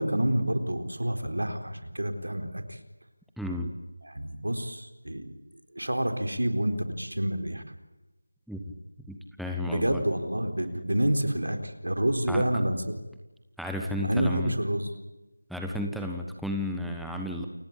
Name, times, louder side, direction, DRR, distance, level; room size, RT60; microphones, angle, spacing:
voice 1, 0.0-2.8 4.0-5.3 5.7-7.6 9.7-12.8 14.0-14.9, right 1 dB, 85° right, 7 dB, 4.1 m, -28 dB
voice 2, 3.4-3.7 8.5-8.6 9.1-10.0 12.3-12.5 13.6-14.5 15.5-17.5, left 1 dB, ahead, 1 dB, 1.2 m, -33 dB
29.0 x 17.0 x 8.9 m, 1.1 s
figure-of-eight pair, 165°, 0 cm